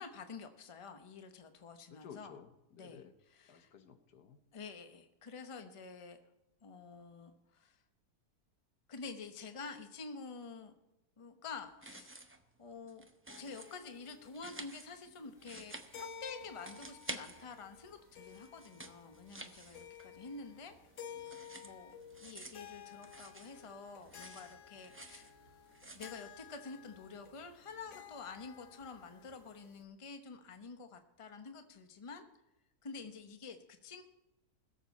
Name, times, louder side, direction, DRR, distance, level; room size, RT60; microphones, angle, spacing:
voice 1, 0.0-2.4 2.7-3.7 4.5-6.2 6.6-7.8 8.9-10.7 11.2-12.2 12.6-13.0 13.4-20.8 21.0-21.3 21.6-21.9 22.2-25.4 25.9-32.3 32.8-34.0, left 4 dB, 25° left, 8 dB, 0.8 m, -49 dB
voice 2, 1.9-3.1 3.5-4.4, left 7 dB, 85° left, 9 dB, 1.5 m, -54 dB
sound 1, 11.7-12.5 12.8-13.8 14.2-16.3 16.6-17.8 18.1-20.3 20.6-23.7 24.0-25.3 25.7-26.2, right 2 dB, 15° right, 0.4 m, -50 dB
sound 2, 13.3-29.8, left 8 dB, 60° left, 1.0 m, -54 dB
sound 3, 15.4-29.5, right 7 dB, 60° right, 1.3 m, -69 dB
21.0 x 7.3 x 4.2 m, 0.96 s
omnidirectional pair, 1.7 m